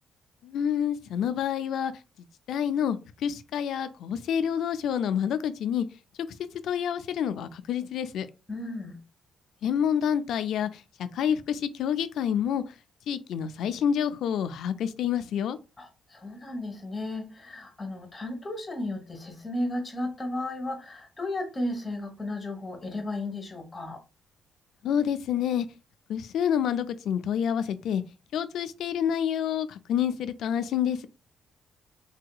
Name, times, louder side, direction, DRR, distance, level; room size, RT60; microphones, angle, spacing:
voice 1, 0.4-1.9 2.5-5.9 6.6-8.3 9.6-12.6 13.1-15.6 24.8-25.7 26.1-28.0 28.3-31.1, left 8 dB, 75° left, 0.4 m, -28 dB
voice 2, 8.5-9.0 15.8-24.0, left 1 dB, 25° left, 1.2 m, -34 dB
3.3 x 2.8 x 2.3 m
cardioid pair, 90°, 0 cm